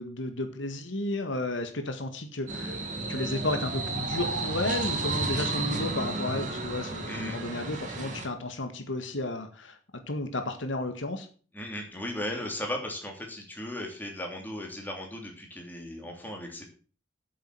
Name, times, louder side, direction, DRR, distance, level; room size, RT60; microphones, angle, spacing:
voice 1, 0.0-2.8 3.1-9.8 10.1-11.3, left 2 dB, 90° left, 7 dB, 1.8 m, -33 dB
sound 1, 2.5-8.3, right 3 dB, 40° right, 2.5 m, -32 dB
voice 2, 7.0-7.4 11.5-16.6, left 1 dB, 10° left, 1 dB, 3.0 m, -36 dB
8.8 x 7.7 x 7.7 m, 0.40 s
head